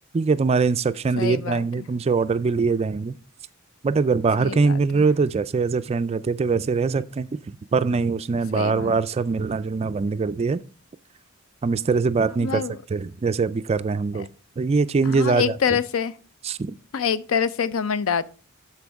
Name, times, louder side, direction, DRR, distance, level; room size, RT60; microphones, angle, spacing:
voice 1, 0.1-3.1 3.8-7.3 7.7-10.6 11.6-12.6 12.9-14.3 14.6-15.8 16.4-16.8, right 4 dB, 30° right, 0.3 m, -22 dB
voice 2, 1.2-1.9 4.4-5.1 8.5-9.0 12.4-12.8 15.1-16.1 16.9-18.3, left 7 dB, 65° left, 0.5 m, -26 dB
13.0 x 4.5 x 3.5 m
head